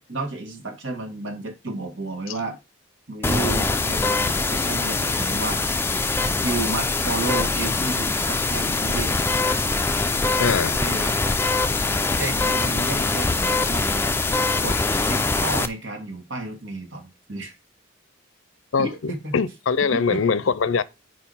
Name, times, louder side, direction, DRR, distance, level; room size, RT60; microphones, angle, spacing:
voice 1, 0.0-2.6 3.1-5.7 6.4-9.2 10.8-11.2 12.2-14.1 14.6-17.6 18.8-19.4 19.8-20.2, right 2 dB, 70° right, 1.8 m, -32 dB
sound 1, 3.2-15.7, left 3 dB, 10° left, 0.4 m, -23 dB
voice 2, 10.4-10.8 18.7-20.8, left 5 dB, 80° left, 0.5 m, -22 dB
4.8 x 4.6 x 5.4 m
head